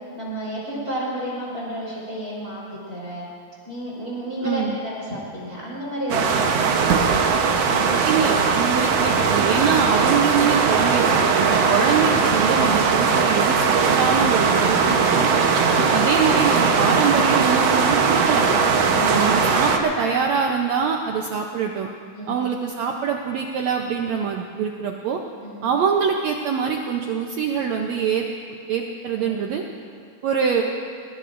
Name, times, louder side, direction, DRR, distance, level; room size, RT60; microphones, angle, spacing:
voice 1, 0.1-3.3 3.7-7.0 18.9-19.2 22.2-22.4 25.4-25.6 29.2-29.4, equal, 25° right, -6 dB, 4.1 m, -31 dB
voice 2, 4.4-4.8 8.1-15.3 15.9-18.5 19.1-21.9 22.3-25.2 25.6-28.2 28.7-29.6 30.2-30.6, right 6 dB, 90° right, 2 dB, 1.5 m, -24 dB
sound 1, 6.1-19.8, right 5 dB, 70° right, 1.5 m, -19 dB
22.5 x 21.5 x 2.6 m, 2.3 s
omnidirectional pair, 4.2 m